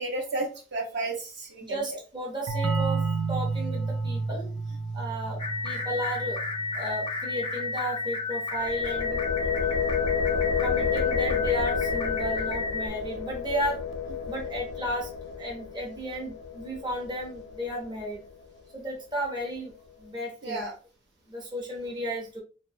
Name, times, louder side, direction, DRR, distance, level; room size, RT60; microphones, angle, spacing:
voice 1, 0.0-2.0 20.4-20.7, right 2 dB, 60° right, 2 dB, 0.7 m, -32 dB
voice 2, 1.6-4.5 4.9-6.4 6.7-9.2 10.3-13.8 14.3-15.1 15.4-18.2 18.7-19.7 20.0-20.7 21.3-22.4, equal, 25° right, -2 dB, 0.6 m, -34 dB
sound 1, 2.5-7.9, right 4 dB, 90° right, 0.4 m, -31 dB
sound 2, 5.4-12.9, left 3 dB, 25° left, 0.4 m, -32 dB
sound 3, 8.6-18.4, left 6 dB, 80° left, 0.5 m, -30 dB
2.7 x 2.1 x 2.6 m, 0.34 s
head